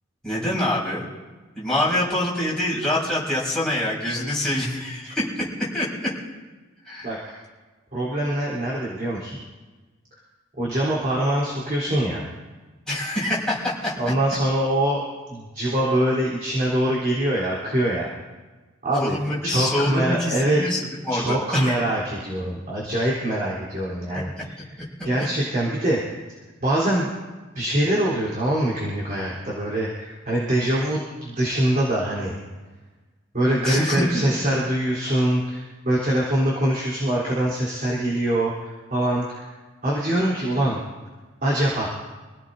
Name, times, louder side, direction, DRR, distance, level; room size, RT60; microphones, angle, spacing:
voice 1, 0.2-1.1 1.5-6.1 6.9-7.2 12.9-14.0 18.9-21.8 33.6-34.2, left 1 dB, 5° left, -8 dB, 5.8 m, -25 dB
voice 2, 7.0-7.4 7.9-9.4 10.6-12.2 14.0-15.0 15.3-18.1 18.8-19.2 19.4-20.6 21.1-24.8 25.0-26.0 26.6-27.1 27.5-32.4 33.3-39.5 39.8-40.8 41.4-41.9, right 1 dB, 40° right, -7 dB, 3.9 m, -24 dB
27.0 x 17.0 x 2.8 m, 1.3 s
head